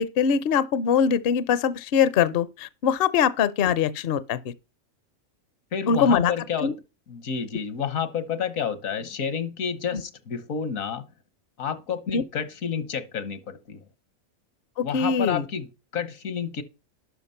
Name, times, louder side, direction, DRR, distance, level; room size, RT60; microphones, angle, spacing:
voice 1, 0.0-4.4 5.9-6.3 6.6-6.7 12.1-12.2 14.8-15.4, left 7 dB, 60° left, 0.7 m, -22 dB
voice 2, 5.7-6.7 7.1-11.1 11.6-13.8 14.8-15.7 15.9-16.6, left 7 dB, 80° left, 1.4 m, -30 dB
11.5 x 4.8 x 5.5 m
omnidirectional pair, 1.4 m